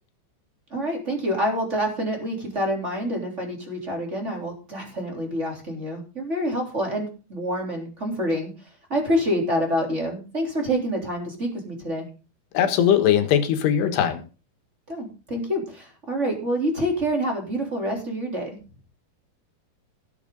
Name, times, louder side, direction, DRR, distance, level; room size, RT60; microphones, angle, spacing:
voice 1, 0.7-8.5 8.9-12.1 14.9-18.5, equal, 20° right, 1 dB, 3.3 m, -27 dB
voice 2, 12.5-14.2, left 9 dB, 90° left, 8 dB, 3.6 m, -20 dB
17.5 x 8.1 x 3.8 m, 0.33 s
omnidirectional pair, 4.6 m